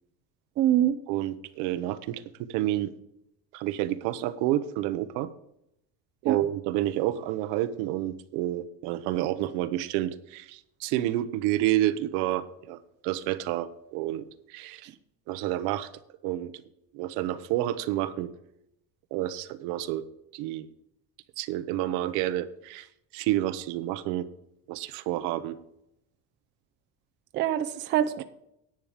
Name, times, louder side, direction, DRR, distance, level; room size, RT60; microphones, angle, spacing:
voice 1, 0.6-0.9 6.2-6.4 27.3-28.2, right 11 dB, 35° right, 9 dB, 0.6 m, -24 dB
voice 2, 1.1-2.9 3.5-5.3 6.2-14.9 15.3-15.9 16.2-16.5 16.9-18.3 19.1-20.0 20.3-20.7 21.4-22.9 23.1-24.3 24.7-25.6, right 14 dB, 75° right, 12 dB, 0.9 m, -29 dB
10.5 x 9.0 x 5.0 m, 0.80 s
cardioid pair, 175°, 31 cm